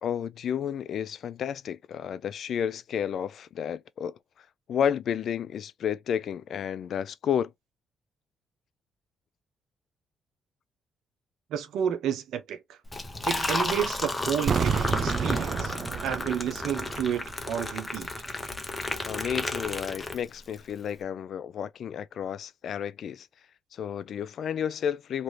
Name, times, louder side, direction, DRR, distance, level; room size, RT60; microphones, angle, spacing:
voice 1, 0.0-4.2 4.7-7.5 19.1-23.3 23.7-25.2, left 8 dB, 65° left, 0.3 m, -31 dB
voice 2, 11.5-12.8 13.3-14.7 15.0-18.1, right 9 dB, 80° right, 0.8 m, -31 dB
Liquid, 12.9-20.5, left 2 dB, 20° left, 0.7 m, -32 dB
sound 1, 14.4-17.3 17.6-17.7, right 6 dB, 55° right, 0.4 m, -30 dB
2.9 x 2.7 x 3.2 m
cardioid pair, 90°, 0 cm